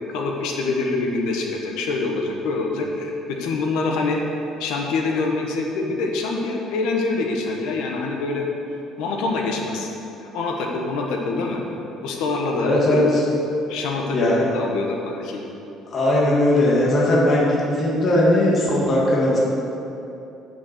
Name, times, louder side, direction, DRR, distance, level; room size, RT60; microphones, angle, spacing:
voice 1, 0.1-4.2 4.6-8.5 9.0-9.9 10.2-11.6 12.0-13.0 13.7-15.4, left 3 dB, 85° left, 1 dB, 1.4 m, -25 dB
voice 2, 12.6-13.2 14.1-14.4 15.9-19.4, left 1 dB, 30° left, -5 dB, 1.8 m, -18 dB
8.7 x 7.0 x 6.7 m, 2.9 s
cardioid pair, 170°, 0 cm